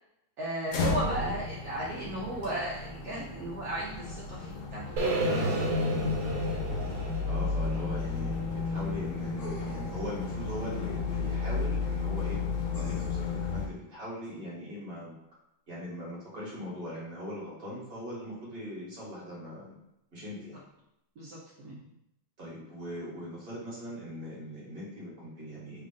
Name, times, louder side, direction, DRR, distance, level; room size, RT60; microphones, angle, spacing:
voice 1, 0.4-5.5 21.2-21.8, right 1 dB, 60° right, -6 dB, 1.1 m, -35 dB
sound 1, 0.7-13.7, left 4 dB, 70° left, 1.1 m, -33 dB
sound 2, 5.0-9.0, equal, 80° right, 1.4 m, -31 dB
voice 2, 7.2-12.4 12.8-15.1 15.7-19.8 20.1-20.6 22.4-25.9, equal, 30° right, -7 dB, 1.4 m, -40 dB
sound 3, 9.4-10.1 12.7-13.3 14.2-14.3, left 2 dB, 45° left, 0.5 m, -45 dB
3.3 x 2.5 x 3.7 m, 0.83 s
omnidirectional pair, 2.0 m